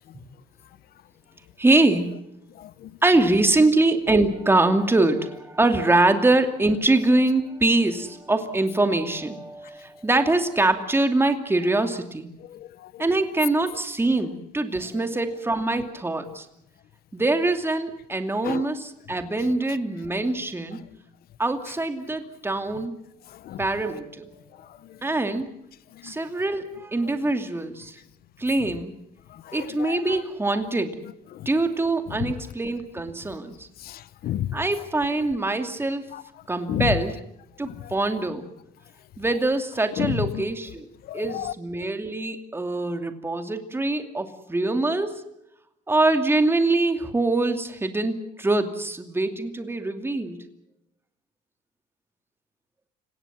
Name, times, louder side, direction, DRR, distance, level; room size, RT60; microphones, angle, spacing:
voice 1, 1.6-2.1 3.0-12.3 13.0-16.5 17.1-20.8 21.4-22.9 23.6-24.3 25.0-25.5 26.0-27.9 28.4-28.9 29.5-31.0 31.5-33.7 34.5-36.1 36.5-37.2 37.6-38.4 39.2-40.9 41.1-45.2 45.9-50.4, right 2 dB, 15° right, 2.6 m, -23 dB
voice 2, 2.6-2.9 12.5-13.0 16.3-16.4 18.4-18.6 23.4-23.6 26.0-26.1 29.3-30.0 31.3-31.5 32.1-32.3 33.8-34.6 36.1-36.2 36.7-37.0 37.7-37.9 40.0-40.4 41.1-41.5, left 12 dB, 65° left, 1.0 m, -31 dB
29.5 x 17.5 x 7.4 m
cardioid pair, 110°, 17 cm